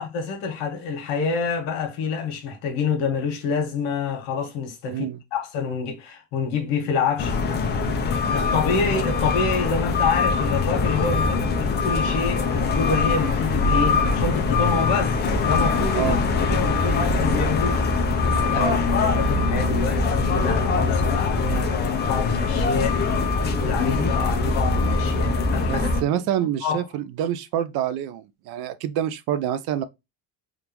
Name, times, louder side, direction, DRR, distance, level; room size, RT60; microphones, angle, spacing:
voice 1, 0.0-7.3 8.0-16.1 16.5-17.8 18.2-18.7 19.1-23.0 23.6-26.8, left 5 dB, 80° left, 1.4 m, -27 dB
voice 2, 4.9-5.2 15.9-16.2 18.5-18.8 25.6-29.8, right 11 dB, 60° right, 0.5 m, -27 dB
sound 1, 7.2-26.0, left 4 dB, 25° left, 0.4 m, -22 dB
3.6 x 2.4 x 2.8 m
cardioid pair, 170°, 44 cm